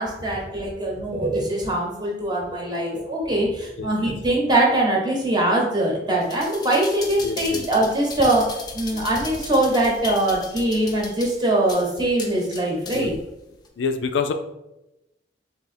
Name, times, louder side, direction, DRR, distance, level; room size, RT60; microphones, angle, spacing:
voice 1, 0.0-8.5 8.7-13.1, right 1 dB, 25° right, -2 dB, 0.9 m, -22 dB
voice 2, 3.8-4.1 7.2-7.6 12.9-13.1 13.8-14.3, left 5 dB, 80° left, 8 dB, 0.4 m, -27 dB
sound 1, 6.2-13.2 13.7-13.8, left 3 dB, 20° left, 0.4 m, -36 dB
3.4 x 2.8 x 4.2 m, 0.93 s
head